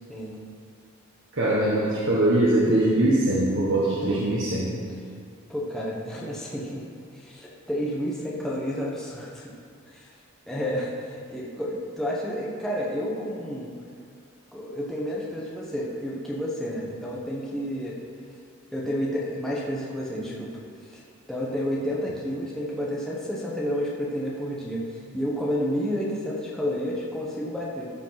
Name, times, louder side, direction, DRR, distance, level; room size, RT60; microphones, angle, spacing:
voice 1, 1.3-4.7, right 1 dB, 55° right, -7 dB, 1.5 m, -22 dB
voice 2, 5.5-6.8 7.1-9.5 9.9-10.1 10.5-13.7 14.5-18.0 18.7-20.5 20.9-21.0 21.3-24.8 25.1-27.8, equal, ahead, -5 dB, 1.3 m, -30 dB
14.5 x 5.2 x 6.0 m, 2.3 s
head